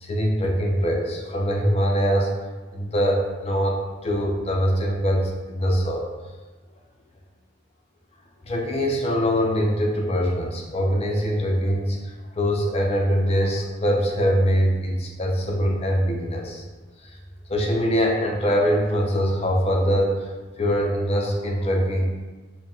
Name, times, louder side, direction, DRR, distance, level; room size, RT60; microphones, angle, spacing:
voice 1, 0.0-2.3 2.7-6.1 8.4-16.6 17.5-20.2 20.6-22.1, equal, 30° left, 0 dB, 0.6 m, -23 dB
4.5 x 2.2 x 3.6 m, 1.3 s
head